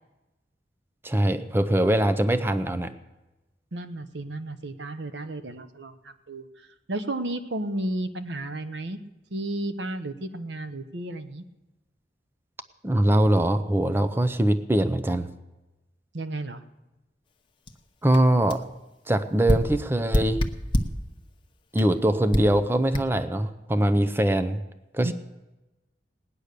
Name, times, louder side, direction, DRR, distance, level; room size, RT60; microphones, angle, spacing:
voice 1, 1.0-2.9 12.8-15.3 18.0-18.6 19.1-20.4 21.7-24.6 24.9-25.1, right 1 dB, 15° right, 10 dB, 0.6 m, -22 dB
voice 2, 3.7-6.5 6.9-9.0 9.3-11.4 16.1-16.6 25.0-25.1, right 1 dB, 85° right, 9 dB, 1.0 m, -33 dB
sound 1, 17.7-17.8 18.1-18.2 18.5-18.7 19.5-21.0 21.8-21.9 22.3-22.6 22.9-23.0, equal, 30° left, 1.0 m, -26 dB
18.5 x 9.9 x 6.7 m, 1.0 s
head